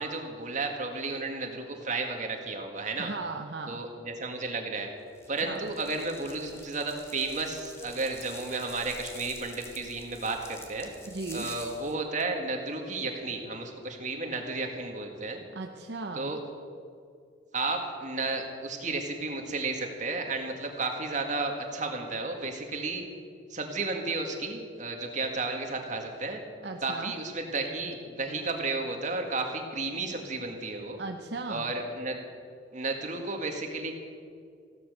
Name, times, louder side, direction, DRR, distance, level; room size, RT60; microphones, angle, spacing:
voice 1, 0.0-3.1 3.7-4.9 5.3-10.9 11.3-15.4 16.2-16.4 17.5-23.0 23.5-26.4 26.8-31.0 31.5-32.2 32.7-33.9, right 3 dB, 40° right, 3 dB, 1.9 m, -33 dB
voice 2, 3.0-3.9 5.4-5.6 11.1-11.5 15.5-16.4 26.6-27.2 31.0-31.7, right 3 dB, 60° right, 4 dB, 0.7 m, -37 dB
sound 1, 5.1-12.0, left 2 dB, 15° left, 1.5 m, -48 dB
16.0 x 12.5 x 6.7 m, 2.2 s
head